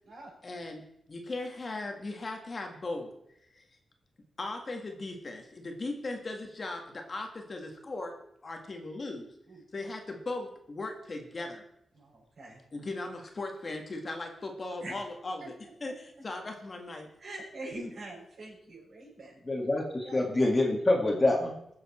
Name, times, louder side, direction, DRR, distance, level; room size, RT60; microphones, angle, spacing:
voice 1, 0.4-3.1 3.5-3.6 4.4-8.1 8.4-9.3 9.7-11.7 12.7-15.5 15.8-17.1, left 2 dB, 35° left, 3 dB, 1.8 m, -38 dB
voice 2, 11.9-12.7 14.8-15.0 15.4-15.5 15.9-16.0 17.2-19.4 20.0-20.2, right 1 dB, 65° right, -4 dB, 6.2 m, -44 dB
voice 3, 19.5-21.5, left 2 dB, 20° left, 1 dB, 2.2 m, -26 dB
21.5 x 7.3 x 4.4 m, 0.76 s
wide cardioid pair, 115°, 0 cm